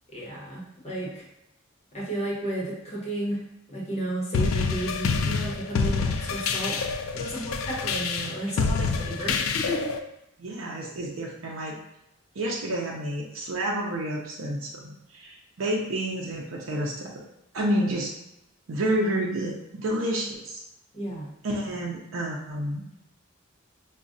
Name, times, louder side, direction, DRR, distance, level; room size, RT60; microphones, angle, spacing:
voice 1, 0.1-1.3 1.9-9.9 20.9-21.3, right 1 dB, 35° left, -5 dB, 0.9 m, -33 dB
sound 1, 4.3-10.0, left 4 dB, 85° left, 0.3 m, -27 dB
voice 2, 10.4-11.8 12.4-17.1 17.5-18.1 18.7-20.6 21.4-22.9, right 1 dB, 70° right, -2 dB, 0.5 m, -29 dB
4.7 x 2.2 x 2.6 m, 0.85 s
head